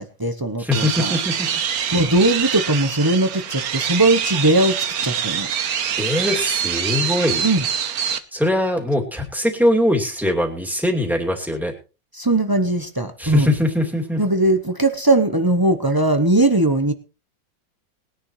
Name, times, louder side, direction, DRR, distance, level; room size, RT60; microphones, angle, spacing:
voice 1, 0.0-1.2 1.9-5.5 7.4-7.6 12.1-13.5 14.2-16.9, right 2 dB, 25° right, 8 dB, 0.5 m, -19 dB
voice 2, 0.6-1.3 6.0-7.4 8.3-11.7 13.2-14.2, left 1 dB, ahead, 1 dB, 2.5 m, -21 dB
sound 1, 0.7-8.2, right 8 dB, 60° right, 1.3 m, -25 dB
20.0 x 10.5 x 3.2 m, 0.32 s
omnidirectional pair, 1.9 m